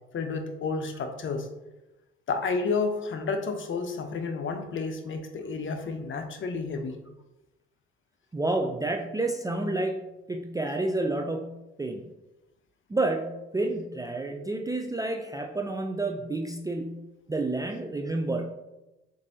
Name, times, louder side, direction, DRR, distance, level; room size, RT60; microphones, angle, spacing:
voice 1, 0.1-1.5 2.3-6.9, left 4 dB, 40° left, 6 dB, 0.7 m, -31 dB
voice 2, 8.3-10.0 10.3-12.0 12.9-18.5, right 2 dB, 10° right, 3 dB, 0.4 m, -30 dB
7.1 x 2.7 x 2.7 m, 1.0 s
hypercardioid pair, 45°, 30 cm